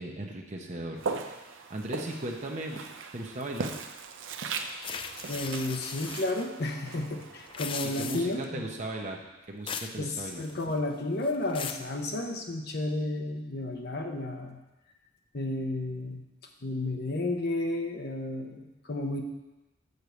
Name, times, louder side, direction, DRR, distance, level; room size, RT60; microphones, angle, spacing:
voice 1, 0.0-2.8 3.1-3.7 8.0-9.2 9.5-10.5, right 1 dB, 40° right, 0 dB, 0.8 m, -37 dB
Walk footsteps, 1.0-8.1, right 4 dB, 85° right, 0.6 m, -39 dB
sound 1, 4.8-6.5 7.4-8.5 9.7-10.0 10.3-10.8 11.2-11.9, left 6 dB, 25° left, 0.3 m, -38 dB
voice 2, 5.3-8.6 10.0-14.6 15.3-16.2 16.6-19.2, left 2 dB, 55° left, 3 dB, 1.0 m, -32 dB
6.7 x 4.7 x 6.9 m, 1.0 s
head